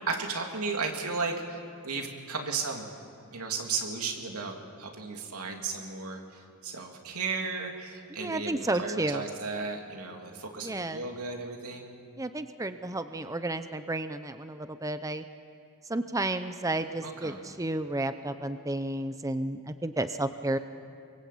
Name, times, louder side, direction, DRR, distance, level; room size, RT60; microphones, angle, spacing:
voice 1, 0.1-2.9 3.3-11.9 17.0-17.5, right 4 dB, 85° right, 2 dB, 3.2 m, -35 dB
voice 2, 8.2-9.2 10.6-11.0 12.2-15.2 15.9-20.6, right 2 dB, 15° right, 10 dB, 0.7 m, -32 dB
27.0 x 23.5 x 8.5 m, 2.5 s
head